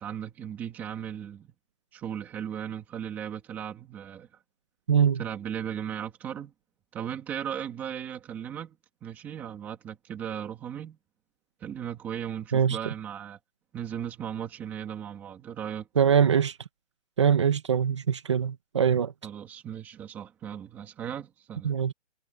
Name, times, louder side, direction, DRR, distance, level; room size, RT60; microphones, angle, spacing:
voice 1, 0.0-1.5 1.9-4.3 5.2-6.5 6.9-11.0 11.6-13.4 13.7-15.9 19.2-21.7, right 9 dB, 5° right, 2.1 m, -37 dB
voice 2, 4.9-5.2 12.5-12.8 16.0-16.6 17.2-19.1 21.6-21.9, right 8 dB, 25° right, 1.8 m, -23 dB
hypercardioid pair, 180°, 38 cm